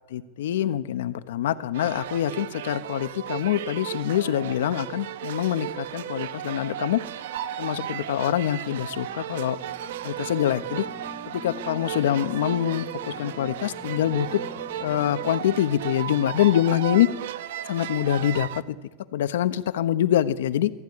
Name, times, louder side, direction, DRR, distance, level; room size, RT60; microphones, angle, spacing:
voice 1, 0.0-7.0 7.6-9.6 10.0-10.9 11.3-14.4 14.8-17.1 17.7-18.8 19.1-20.7, left 11 dB, 85° left, 10 dB, 1.2 m, -25 dB
sound 1, 1.7-18.6, right 11 dB, 80° right, 0.9 m, -35 dB
sound 2, 9.2-15.3, left 3 dB, 10° left, 1.0 m, -45 dB
24.0 x 14.0 x 9.8 m, 1.3 s
supercardioid pair, 145°, 0 cm